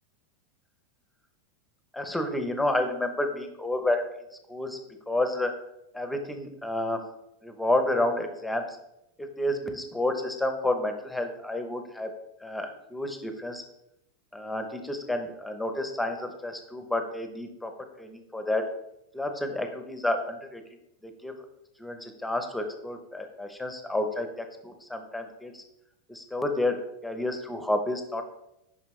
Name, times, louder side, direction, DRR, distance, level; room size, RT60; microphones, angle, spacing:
voice 1, 1.9-4.0 4.5-4.8 5.1-5.5 5.9-7.1 7.4-8.8 9.2-12.1 12.4-13.6 14.3-17.7 18.0-18.7 19.1-20.6 21.0-21.3 21.8-25.6 26.1-28.2, left 1 dB, 5° left, 6 dB, 0.8 m, -30 dB
9.1 x 5.6 x 3.2 m, 0.86 s
supercardioid pair, 140°, 0 cm